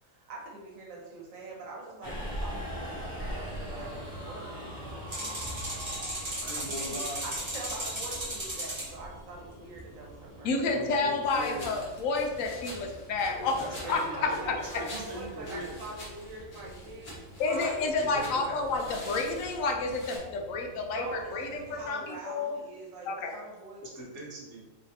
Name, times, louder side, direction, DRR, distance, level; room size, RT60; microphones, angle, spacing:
voice 1, 0.0-5.9 6.2-11.0 13.8-17.1 17.5-18.7 20.8-23.8, right 2 dB, 85° right, -3 dB, 1.3 m, -44 dB
Subway metro underground, 2.0-21.9, equal, 60° left, 1.3 m, -43 dB
sound 1, 5.1-8.9, right 1 dB, 25° right, 1.0 m, -35 dB
voice 2, 6.3-7.2 10.7-11.7 13.4-15.8 17.1-17.2 18.0-19.3 23.8-24.7, right 1 dB, 65° right, -4 dB, 1.3 m, -41 dB
voice 3, 10.4-13.6 13.9-14.6 17.4-22.6 23.1-23.4, left 3 dB, 90° left, 4 dB, 1.0 m, -30 dB
sound 2, 11.2-20.2, left 1 dB, 40° left, 1.2 m, -47 dB
3.9 x 3.2 x 2.7 m, 1.2 s
omnidirectional pair, 1.4 m